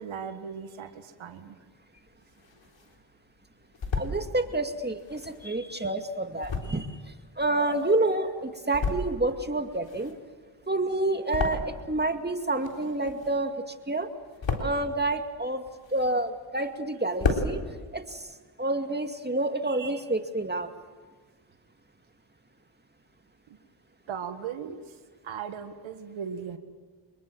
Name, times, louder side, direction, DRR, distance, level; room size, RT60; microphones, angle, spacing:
voice 1, 0.0-1.6 23.5-23.6 24.1-26.6, right 7 dB, 90° right, 7 dB, 1.8 m, -38 dB
sound 1, 2.0-3.0 3.4-4.2 4.9-8.1 8.5-9.3 9.6-12.1 12.3-13.6 13.9-14.9 15.4-16.5 16.8-16.9 17.1-17.5, left 4 dB, 70° left, 3.9 m, -33 dB
voice 2, 4.0-6.9 7.4-10.2 10.7-13.5 13.9-14.1 14.6-15.6 15.9-17.6 17.9-18.3 18.6-20.7, right 2 dB, 20° right, 6 dB, 2.3 m, -28 dB
25.0 x 22.5 x 7.7 m, 1.5 s
cardioid pair, 50°, 46 cm